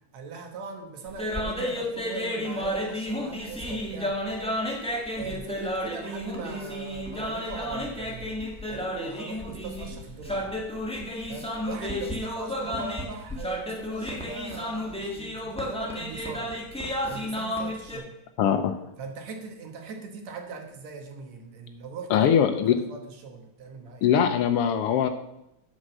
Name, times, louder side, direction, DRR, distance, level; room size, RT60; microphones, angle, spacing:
voice 1, 0.1-4.2 5.2-10.7 11.3-16.6 17.1-18.1 19.0-22.3 22.7-24.1, right 4 dB, 70° right, 4 dB, 2.5 m, -40 dB
sound 1, 1.1-18.0, left 1 dB, 5° left, 0.6 m, -32 dB
voice 2, 18.4-18.7 22.1-22.7 24.0-25.1, left 8 dB, 80° left, 8 dB, 1.3 m, -21 dB
9.6 x 6.3 x 6.6 m, 0.86 s
omnidirectional pair, 3.3 m